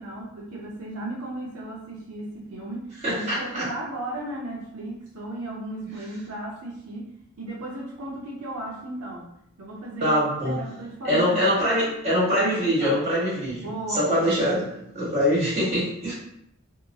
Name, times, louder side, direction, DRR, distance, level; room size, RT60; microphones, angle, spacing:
voice 1, 0.0-7.1 7.4-9.3 9.6-10.1 10.4-12.0 12.2-13.1 13.5-14.4, right 1 dB, 85° right, -3 dB, 0.6 m, -35 dB
voice 2, 3.0-3.7 10.0-10.6 11.0-14.6 14.9-16.1, equal, 30° right, -9 dB, 1.5 m, -23 dB
2.8 x 2.3 x 2.6 m, 0.76 s
head